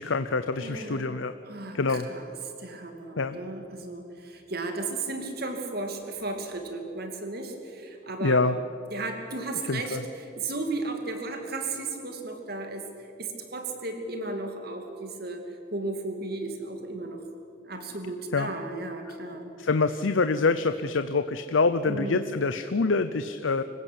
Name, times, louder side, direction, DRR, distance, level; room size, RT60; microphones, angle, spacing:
voice 1, 0.0-1.3 1.7-2.1 3.2-3.4 8.2-8.5 9.7-10.0 18.3-18.5 19.6-23.6, left 3 dB, 80° left, 10 dB, 0.7 m, -25 dB
voice 2, 0.6-1.2 1.5-2.3 2.6-8.5 8.9-17.2 17.6-19.5 21.9-22.3, right 2 dB, 50° right, 5 dB, 2.7 m, -35 dB
26.0 x 16.0 x 8.3 m, 2.7 s
head